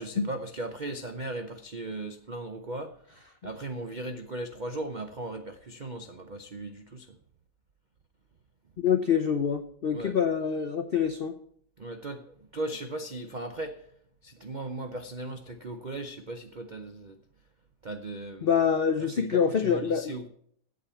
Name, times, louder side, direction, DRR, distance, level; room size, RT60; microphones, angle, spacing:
voice 1, 0.0-3.0 3.4-7.2 9.9-10.1 11.8-13.9 14.2-17.2 17.8-18.6 19.0-20.3, right 2 dB, 65° right, 0.4 m, -37 dB
voice 2, 8.8-11.4 18.4-20.1, left 7 dB, 65° left, 0.5 m, -26 dB
8.6 x 7.8 x 8.3 m
omnidirectional pair, 1.9 m